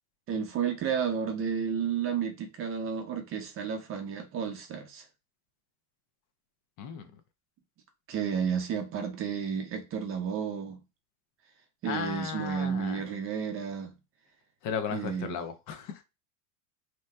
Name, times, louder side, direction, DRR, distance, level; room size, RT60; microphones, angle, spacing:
voice 1, 0.3-5.0 8.1-10.8 11.8-13.9 14.9-15.4, right 7 dB, 30° right, 0.6 m, -32 dB
voice 2, 6.8-7.2 11.8-13.1 14.6-16.0, left 7 dB, 45° left, 0.7 m, -35 dB
2.9 x 2.2 x 3.3 m
supercardioid pair, 115°, 44 cm